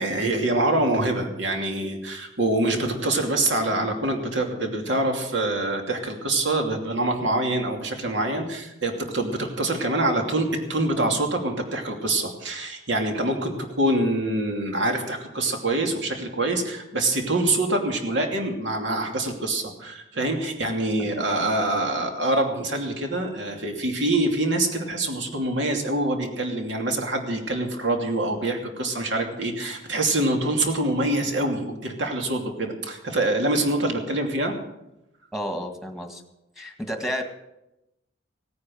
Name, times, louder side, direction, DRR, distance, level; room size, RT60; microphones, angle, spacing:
voice 1, 0.0-34.6, right 2 dB, 65° right, 3 dB, 2.8 m, -25 dB
voice 2, 35.3-36.2 36.6-37.2, equal, ahead, 5 dB, 1.8 m, -31 dB
17.0 x 9.7 x 7.8 m, 0.90 s
head